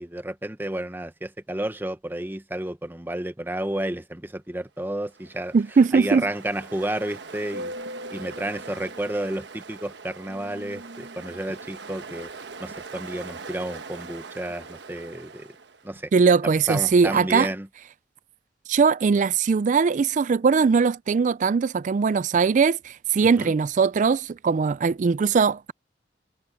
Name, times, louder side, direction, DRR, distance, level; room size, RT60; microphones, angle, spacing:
voice 1, 0.0-5.5 5.9-7.7 8.1-12.3 12.6-15.5 15.8-16.1 16.7-17.7 23.4-23.5, right 1 dB, 10° right, 0.9 m, -31 dB
Ocean, 5.0-16.0, right 3 dB, 80° right, 1.2 m, -41 dB
voice 2, 5.5-6.3 16.1-17.5 18.7-25.7, right 5 dB, 45° right, 0.3 m, -20 dB
head